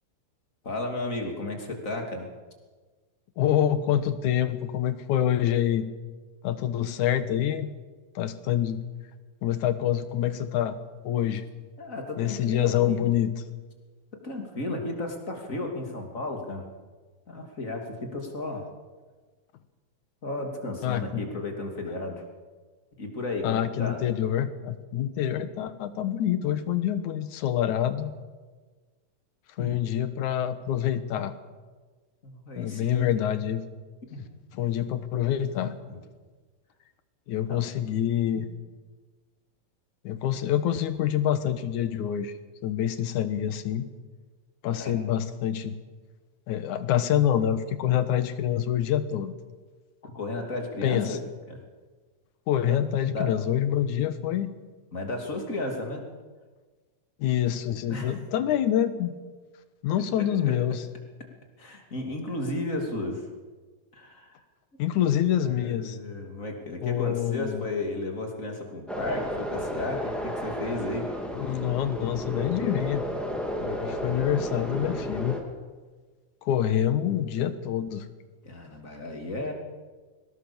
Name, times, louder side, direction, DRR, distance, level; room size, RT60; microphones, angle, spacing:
voice 1, 0.6-2.3 11.8-13.0 14.2-16.6 17.3-18.6 20.2-22.2 23.0-24.0 29.6-29.8 32.2-33.1 34.1-34.2 35.9-36.0 37.5-37.6 44.7-44.9 50.0-51.2 51.5-51.6 53.1-53.3 54.9-56.0 57.9-58.2 60.4-60.5 61.6-63.3 63.9-64.4 65.4-71.1 78.4-79.5, left 2 dB, 25° left, 2 dB, 3.0 m, -34 dB
voice 2, 3.4-5.9 6.4-7.7 8.2-8.8 9.4-10.8 11.0-11.5 12.2-13.3 20.8-21.2 23.4-28.1 29.6-31.3 32.6-33.6 34.5-35.7 37.3-38.5 40.0-42.3 42.6-43.9 44.6-45.7 46.5-49.3 50.8-51.2 52.5-54.5 57.2-59.1 59.8-60.8 64.8-66.0 66.8-67.7 71.4-73.0 73.6-75.4 76.4-78.1, left 10 dB, 85° left, 12 dB, 2.6 m, -26 dB
sound 1, 68.9-75.4, equal, ahead, 2.7 m, -32 dB
23.0 x 18.5 x 7.1 m, 1.4 s
omnidirectional pair, 3.4 m